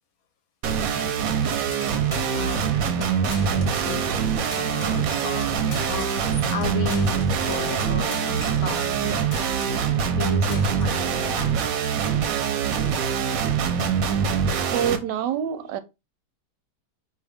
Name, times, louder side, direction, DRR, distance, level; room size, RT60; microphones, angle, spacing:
sound 1, 0.6-15.0, right 7 dB, 65° right, 0.9 m, -24 dB
sound 2, 1.5-2.7 3.0-3.1 3.3-4.2 4.5-9.0 9.3-9.9 10.2-11.0, left 2 dB, 30° left, 1.1 m, -42 dB
voice 1, 2.3-4.1 4.6-9.3 9.6-11.6, left 7 dB, 65° left, 1.0 m, -35 dB
voice 2, 14.7-15.8, right 9 dB, 85° right, 1.2 m, -26 dB
4.5 x 2.8 x 3.3 m
omnidirectional pair, 1.8 m